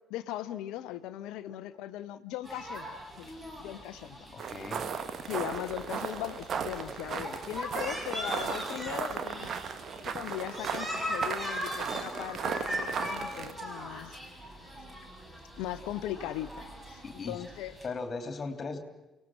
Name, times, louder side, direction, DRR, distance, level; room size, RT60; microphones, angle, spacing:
voice 1, 0.1-4.5 5.3-9.6 10.1-14.2 15.6-17.7, left 13 dB, 60° left, 13 dB, 0.8 m, -39 dB
sound 1, 2.4-17.9, equal, 20° right, 6.5 m, -40 dB
voice 2, 4.3-4.9 17.0-17.4 17.8-18.8, left 4 dB, 35° left, 6 dB, 2.9 m, -38 dB
sound 2, 4.4-13.5, right 6 dB, 45° right, 1.4 m, -36 dB
29.5 x 18.0 x 6.2 m, 1.0 s
figure-of-eight pair, 50°, 0 cm